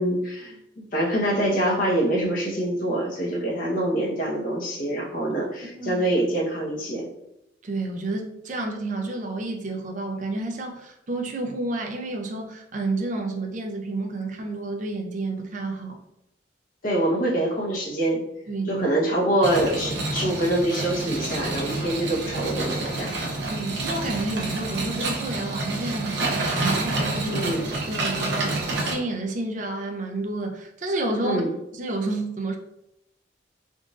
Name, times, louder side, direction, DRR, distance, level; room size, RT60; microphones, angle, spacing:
voice 1, 0.0-7.1 16.8-18.2 18.7-23.1 27.3-27.7 31.2-31.5, right 1 dB, 50° left, -3 dB, 1.0 m, -25 dB
voice 2, 7.6-16.0 18.5-18.9 23.5-27.5 27.9-31.4 31.7-32.6, right 2 dB, 45° right, 3 dB, 0.5 m, -30 dB
sound 1, 19.4-28.9, right 2 dB, 75° right, 0.8 m, -28 dB
3.7 x 2.5 x 2.4 m, 0.85 s
head